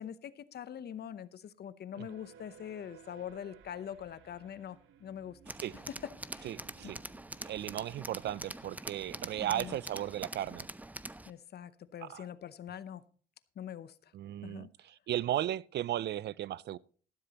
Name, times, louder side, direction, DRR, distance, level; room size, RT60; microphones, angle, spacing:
voice 1, 0.0-5.8 6.3-6.6 6.8-6.9 9.4-9.8 11.2-13.0 13.6-14.1 14.4-14.7, left 9 dB, 55° left, 0.8 m, -44 dB
sound 1, 1.9-7.5, right 8 dB, 90° right, 1.3 m, -58 dB
Tools, 5.5-11.3, right 1 dB, 10° right, 0.6 m, -45 dB
voice 2, 6.4-7.0 7.4-10.7 12.0-12.3 14.1-16.8, right 12 dB, 60° right, 0.4 m, -36 dB
13.0 x 12.0 x 2.9 m
cardioid pair, 90°, 20 cm